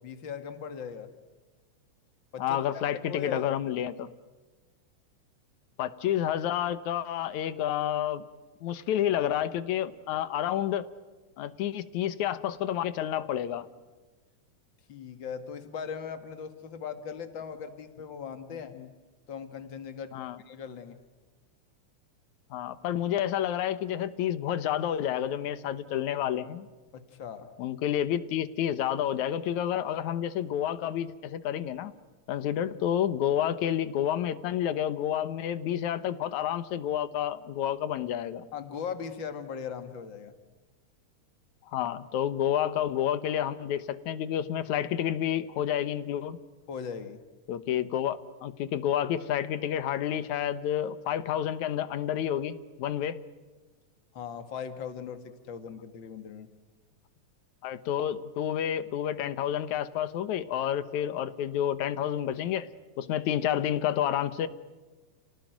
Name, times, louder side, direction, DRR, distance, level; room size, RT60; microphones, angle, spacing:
voice 1, 0.0-1.1 2.3-3.6 14.9-18.7 19.3-20.2 20.5-21.0 26.9-27.5 38.5-40.3 46.7-47.2 54.1-56.5, left 7 dB, 45° left, 9 dB, 2.4 m, -39 dB
voice 2, 2.4-4.1 5.8-8.2 8.6-10.9 11.4-13.7 18.7-18.9 20.1-20.4 22.5-26.7 27.6-31.9 32.3-38.5 41.7-46.4 47.5-53.2 57.6-62.7 63.0-64.5, left 10 dB, 80° left, 14 dB, 2.5 m, -29 dB
29.5 x 18.0 x 9.2 m, 1.3 s
omnidirectional pair, 3.3 m